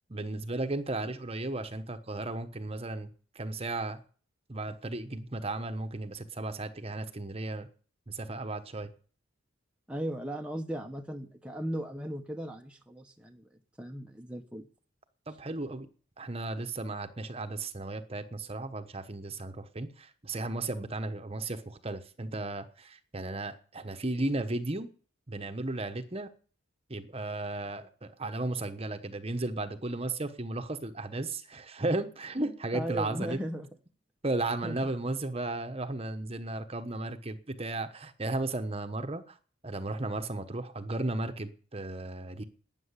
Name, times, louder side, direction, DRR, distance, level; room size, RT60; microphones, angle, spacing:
voice 1, 0.1-3.1 3.3-4.0 4.5-7.7 8.1-8.9 15.3-15.9 16.2-24.9 25.3-26.3 26.9-33.4 34.2-39.4 39.6-42.4, right 2 dB, 30° right, 1.1 m, -35 dB
voice 2, 9.9-13.5 13.8-14.7 32.7-33.7 34.6-34.9, right 1 dB, 5° right, 1.0 m, -37 dB
12.5 x 9.2 x 9.8 m
head